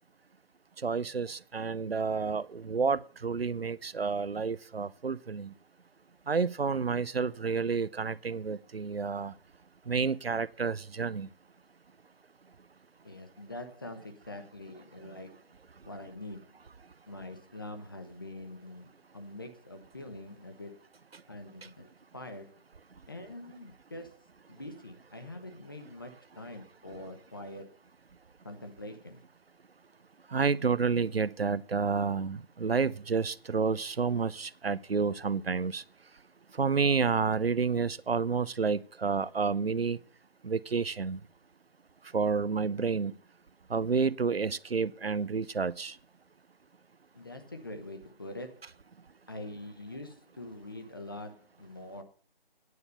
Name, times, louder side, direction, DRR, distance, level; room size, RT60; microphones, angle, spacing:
voice 1, 0.8-5.5 6.3-9.3 9.9-11.3 21.1-21.2 30.3-35.8 36.5-40.0 40.4-41.2 42.1-43.1 43.7-46.0, right 5 dB, 80° right, 0.7 m, -30 dB
voice 2, 13.0-15.4 15.8-16.6 17.1-20.8 21.3-22.6 23.1-24.2 24.5-27.8 28.4-29.2 47.1-48.8 49.3-52.0, left 1 dB, 20° left, 0.9 m, -44 dB
9.7 x 7.0 x 6.8 m
figure-of-eight pair, 165°, 30 cm